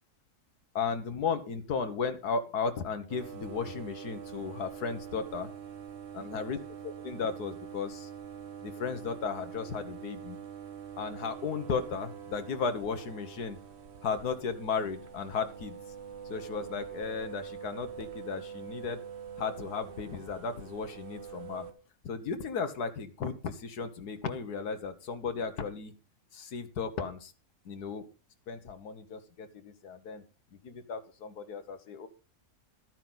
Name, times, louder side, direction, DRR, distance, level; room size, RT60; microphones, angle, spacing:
voice 1, 0.7-5.5 6.1-6.6 6.8-8.1 8.6-10.4 11.0-13.6 14.0-15.8 16.2-19.0 19.4-21.7 22.0-25.9 26.3-27.3 27.6-28.1 28.5-30.2 30.6-32.1, left 5 dB, 85° left, 9 dB, 1.8 m, -35 dB
sound 1, 3.1-21.7, right 8 dB, 45° right, 1.3 m, -45 dB
13.5 x 9.2 x 4.0 m, 0.32 s
omnidirectional pair, 1.6 m